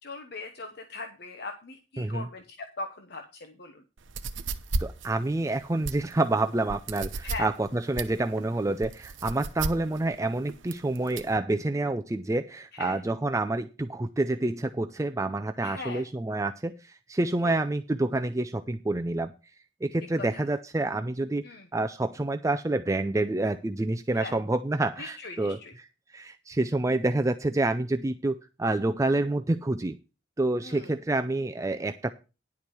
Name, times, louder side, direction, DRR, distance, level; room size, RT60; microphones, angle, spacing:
voice 1, 0.0-3.8 7.2-7.5 12.7-13.0 15.6-16.0 17.4-17.5 20.2-20.5 21.4-21.7 24.1-24.3 25.0-25.7 30.6-30.9, left 3 dB, 55° left, 6 dB, 1.0 m, -40 dB
sound 1, 4.0-11.4, right 3 dB, 80° right, 0.8 m, -34 dB
voice 2, 4.8-19.3 19.8-21.4 21.7-25.6 26.1-30.0 30.4-32.1, right 2 dB, 15° right, 8 dB, 0.4 m, -28 dB
10.5 x 4.8 x 7.0 m, 0.30 s
head